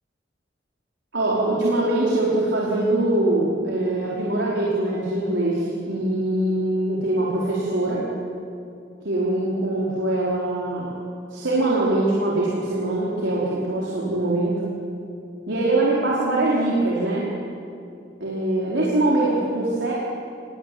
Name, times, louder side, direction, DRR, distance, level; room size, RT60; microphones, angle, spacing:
voice 1, 1.1-8.0 9.0-10.9 11.3-14.6 15.5-17.3 18.2-19.9, right 2 dB, 85° right, -5 dB, 5.0 m, -23 dB
26.0 x 22.0 x 9.5 m, 2.5 s
head